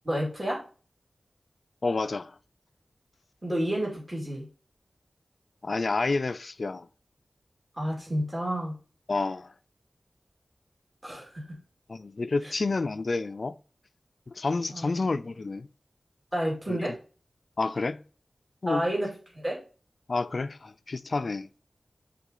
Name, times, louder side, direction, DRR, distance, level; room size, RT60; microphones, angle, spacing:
voice 1, 0.0-0.6 3.4-4.5 7.7-8.8 11.0-11.6 12.4-12.5 14.7-15.0 16.3-17.0 18.7-19.6, equal, 25° right, 2.5 m, -30 dB
voice 2, 1.8-2.4 5.6-6.9 9.1-9.5 11.9-13.6 14.3-15.7 16.7-16.9 17.6-18.0 18.6-18.8 20.1-21.5, left 3 dB, 60° left, 0.4 m, -29 dB
7.2 x 3.8 x 3.8 m
wide cardioid pair, 90°, 0 cm